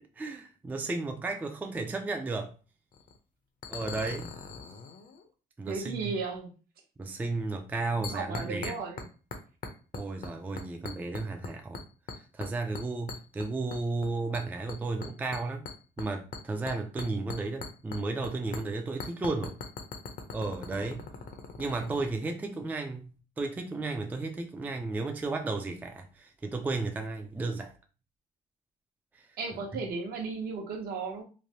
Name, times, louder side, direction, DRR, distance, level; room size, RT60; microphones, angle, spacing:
voice 1, 0.2-2.5 3.7-4.3 5.6-6.0 7.0-8.8 9.9-11.8 12.2-15.6 16.0-19.6 20.3-21.0 21.6-23.1 23.4-27.7 29.1-29.3 29.7-29.8, right 3 dB, 10° right, 0.3 m, -33 dB
sound 1, 2.9-3.2 3.6-5.2 8.0-9.1 9.3-10.3 10.6-11.5 11.7-12.5 12.8-14.1 14.3-18.3 18.5-18.6 19.0-22.1, left 5 dB, 55° left, 0.6 m, -40 dB
voice 2, 5.7-6.5 8.0-9.0 29.4-31.2, right 4 dB, 65° right, 0.8 m, -35 dB
3.2 x 2.1 x 2.7 m
cardioid pair, 110°, 17 cm